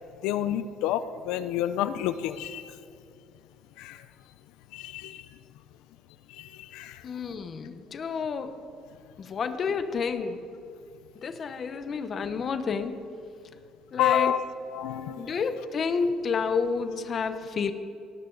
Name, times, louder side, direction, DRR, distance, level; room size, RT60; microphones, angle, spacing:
voice 1, 0.2-2.6 3.8-4.0 4.7-5.2 6.4-7.0 14.0-14.4 14.7-15.3, left 10 dB, 90° left, 12 dB, 0.5 m, -29 dB
voice 2, 7.0-8.6 9.2-10.4 11.2-13.0 13.9-14.3 15.2-17.7, left 5 dB, 35° left, 9 dB, 0.9 m, -30 dB
18.0 x 18.0 x 4.0 m, 2.5 s
cardioid pair, 155°, 0 cm